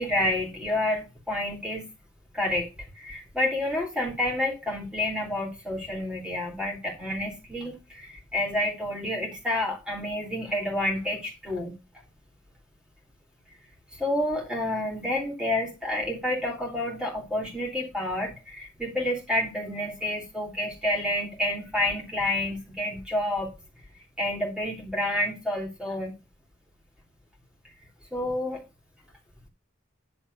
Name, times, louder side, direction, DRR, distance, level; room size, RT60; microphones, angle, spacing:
voice 1, 0.0-1.9 2.3-2.7 2.9-11.8 13.9-23.5 24.2-26.2 28.1-28.6, left 1 dB, 5° right, -1 dB, 3.3 m, -29 dB
10.5 x 4.2 x 6.9 m, 0.27 s
head